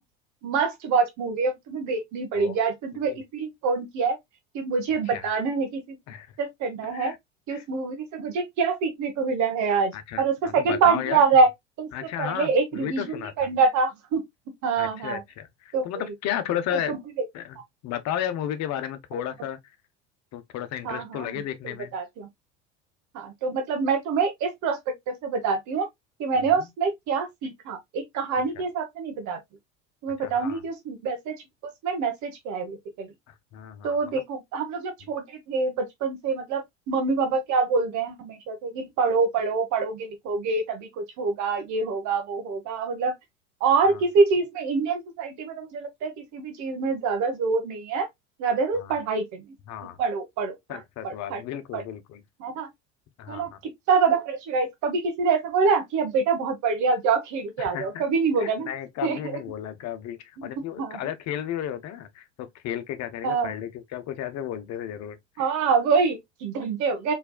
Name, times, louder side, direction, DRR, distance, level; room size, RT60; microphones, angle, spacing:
voice 1, 0.4-4.2 4.5-6.0 6.4-7.1 7.5-9.9 10.2-11.5 11.8-11.9 12.2-14.2 14.6-15.2 15.7-16.1 16.9-17.0 20.8-22.3 23.1-25.9 26.2-29.4 30.0-31.4 31.6-33.1 33.8-43.1 43.6-48.1 48.4-49.4 50.0-50.8 51.0-51.4 51.7-51.8 52.4-52.7 53.3-58.7 59.0-59.2 60.6-61.0 63.2-63.6 65.4-67.1, right 4 dB, 50° right, 1.3 m, -25 dB
voice 2, 6.8-7.2 7.5-7.6 9.9-11.2 11.9-13.5 14.8-16.9 17.3-19.6 20.3-21.9 26.4-26.7 28.5-28.6 30.2-30.6 33.3-34.0 43.9-44.0 48.7-49.0 49.7-50.0 50.7-52.2 53.2-53.6 57.6-58.0 58.4-65.5, left 10 dB, 45° left, 1.0 m, -34 dB
4.5 x 3.4 x 2.3 m
hypercardioid pair, 75°, 37 cm